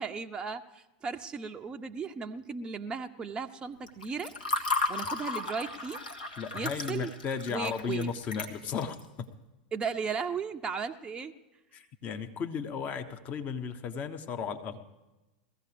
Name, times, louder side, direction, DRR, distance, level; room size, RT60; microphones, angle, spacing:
voice 1, 0.0-4.4 4.9-6.0 6.5-7.1 7.5-8.1 9.7-11.3, right 5 dB, 20° right, 5 dB, 0.5 m, -36 dB
Water / Fill (with liquid), 3.9-9.0, left 3 dB, 80° left, 1.6 m, -34 dB
voice 2, 6.4-9.3 11.7-14.8, left 6 dB, 35° left, 7 dB, 1.0 m, -35 dB
21.0 x 15.5 x 3.4 m, 1.1 s
figure-of-eight pair, 90°, 5 cm